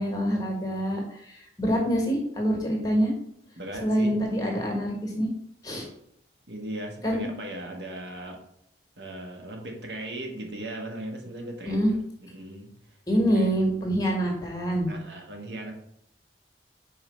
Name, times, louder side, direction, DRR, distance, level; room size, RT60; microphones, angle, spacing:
voice 1, 0.0-3.1 3.8-5.3 5.6-5.9 7.0-7.3 11.6-11.9 13.1-14.9, equal, 20° left, 0 dB, 1.5 m, -26 dB
voice 2, 3.6-4.2 6.5-8.4 9.0-12.0 12.2-12.7 13.1-13.5 14.9-15.7, right 1 dB, 85° right, 2 dB, 1.4 m, -38 dB
5.2 x 4.7 x 4.4 m, 0.75 s
head